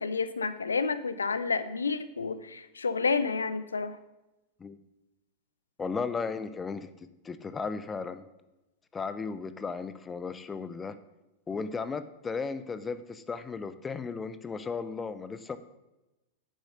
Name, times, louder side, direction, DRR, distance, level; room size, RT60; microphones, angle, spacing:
voice 1, 0.0-4.0, left 4 dB, 75° left, 13 dB, 0.6 m, -30 dB
voice 2, 5.8-6.9 7.2-8.2 8.9-11.0 11.5-15.6, left 5 dB, 15° left, 13 dB, 0.6 m, -35 dB
9.5 x 7.3 x 6.5 m, 1.0 s
figure-of-eight pair, 90°, 0 cm